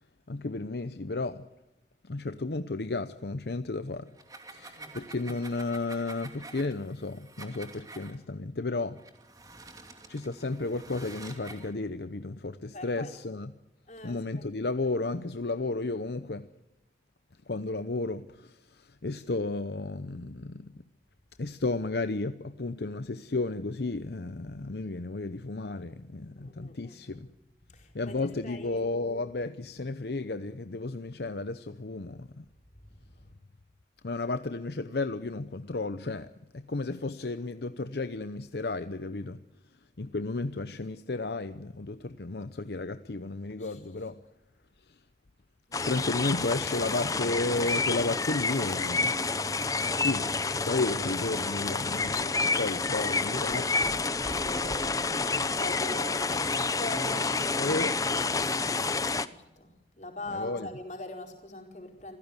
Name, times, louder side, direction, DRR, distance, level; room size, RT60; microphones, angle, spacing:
voice 1, 0.3-1.5 2.0-4.1 4.5-9.0 10.1-13.5 14.0-16.5 17.5-20.7 21.4-27.3 27.9-32.5 34.0-39.4 40.0-44.2 44.9-45.0 45.8-49.2 49.9-50.3 50.6-53.7 55.3-55.4 57.6-58.0 60.3-60.7, left 3 dB, 70° left, 0.8 m, -33 dB
sound 1, 4.1-8.1 9.0-11.7, right 3 dB, 20° right, 2.6 m, -48 dB
voice 2, 12.7-13.1 13.9-14.5 26.4-27.2 27.7-28.8 32.8-33.3 43.6-43.8 45.7-45.9 52.4-55.2 55.6-57.4 58.0-62.2, left 1 dB, 40° left, 4.6 m, -42 dB
sound 2, 45.7-59.3, left 3 dB, 20° left, 0.7 m, -29 dB
26.5 x 16.0 x 8.2 m
head